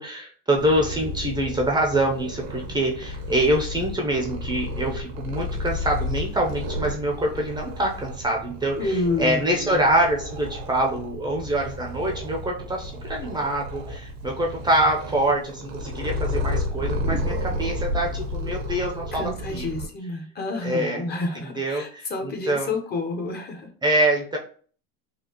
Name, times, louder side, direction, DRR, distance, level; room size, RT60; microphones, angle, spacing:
voice 1, 0.0-19.7 20.6-21.1 21.6-22.7 23.8-24.4, right 1 dB, 15° right, 0 dB, 0.7 m, -25 dB
Purr, 0.5-19.9, left 1 dB, 80° right, 1.1 m, -32 dB
voice 2, 8.8-9.8 19.1-23.7, left 2 dB, 35° left, 3 dB, 0.9 m, -29 dB
4.1 x 2.3 x 2.9 m, 0.44 s
hypercardioid pair, 95°, 30 cm